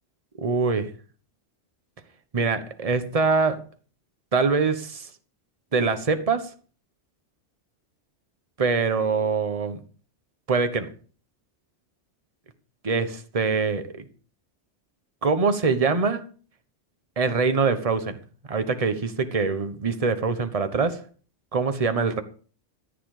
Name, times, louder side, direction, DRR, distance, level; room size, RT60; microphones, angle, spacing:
voice 1, 0.4-0.9 2.3-3.6 4.3-5.1 5.7-6.5 8.6-9.8 10.5-10.9 12.8-14.0 15.2-16.3 17.2-18.2 18.5-21.0 21.5-22.2, right 4 dB, 30° right, 9 dB, 1.2 m, -24 dB
14.0 x 9.4 x 4.9 m, 0.41 s
omnidirectional pair, 1.2 m